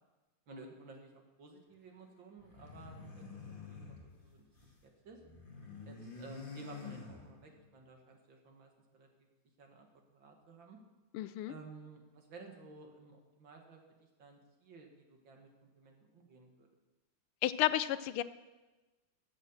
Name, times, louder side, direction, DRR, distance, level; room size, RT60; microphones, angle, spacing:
voice 1, 0.5-4.5 4.8-5.2 5.8-9.3 9.6-9.9 10.1-10.8 11.5-16.7, right 3 dB, 60° right, 2 dB, 2.4 m, -55 dB
sound 1, 2.4-4.8 5.1-7.7, left 4 dB, 25° left, 2.1 m, -49 dB
voice 2, 11.1-11.5 17.4-18.2, left 13 dB, 80° left, 14 dB, 1.5 m, -32 dB
15.0 x 7.8 x 7.2 m, 1.2 s
omnidirectional pair, 2.4 m